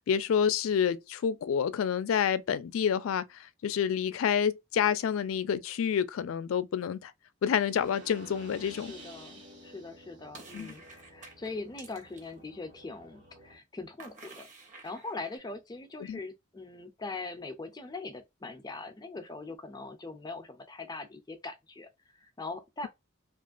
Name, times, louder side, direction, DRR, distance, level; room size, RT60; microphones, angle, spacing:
voice 1, 0.0-7.1 7.4-8.9 10.5-10.7 16.1-16.2, left 8 dB, 90° left, 0.3 m, -28 dB
sound 1, 7.6-13.6, right 1 dB, 60° right, 1.2 m, -52 dB
voice 2, 8.6-14.5 14.8-22.9, left 3 dB, 20° left, 0.4 m, -42 dB
sound 2, 10.3-12.3 14.0-15.4, right 3 dB, 40° right, 0.8 m, -50 dB
2.9 x 2.4 x 2.4 m
head